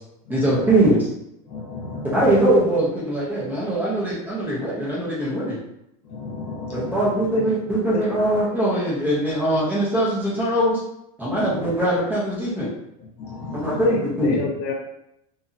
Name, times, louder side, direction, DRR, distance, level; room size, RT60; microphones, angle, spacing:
voice 1, 0.3-1.1 2.1-5.6 6.7-10.8 11.2-12.7 13.5-14.4, right 1 dB, 10° right, -7 dB, 0.7 m, -21 dB
voice 2, 1.5-2.2 6.1-7.1 11.2-11.6 13.2-13.8, left 3 dB, 35° left, -4 dB, 1.0 m, -34 dB
voice 3, 13.8-14.7, left 5 dB, 60° left, 0 dB, 0.4 m, -29 dB
2.8 x 2.7 x 2.4 m, 0.81 s
supercardioid pair, 175°, 18 cm